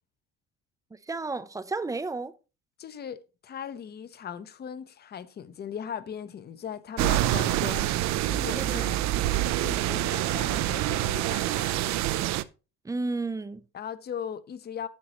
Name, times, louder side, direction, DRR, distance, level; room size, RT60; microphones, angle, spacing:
voice 1, 0.9-2.3 8.5-8.8 12.8-13.6, right 3 dB, 10° right, 0.4 m, -32 dB
voice 2, 2.8-7.9 8.2-9.1 9.6-12.0 13.7-14.9, left 8 dB, 30° left, 0.7 m, -38 dB
sound 1, 7.0-12.4, right 14 dB, 60° right, 0.5 m, -26 dB
10.5 x 7.5 x 2.9 m
cardioid pair, 145°, 31 cm